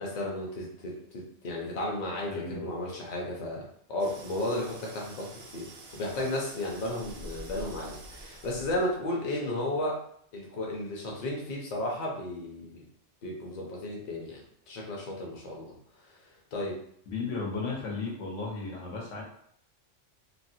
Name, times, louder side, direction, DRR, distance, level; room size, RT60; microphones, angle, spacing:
voice 1, 0.0-10.0 10.3-12.8 13.2-15.7 16.5-16.8, left 1 dB, 45° left, -2 dB, 0.7 m, -34 dB
voice 2, 2.3-2.7 17.1-19.2, left 4 dB, 80° left, -2 dB, 1.2 m, -34 dB
sound 1, 4.0-9.1, right 1 dB, 60° right, 0.4 m, -47 dB
3.1 x 2.2 x 2.7 m, 0.65 s
omnidirectional pair, 1.2 m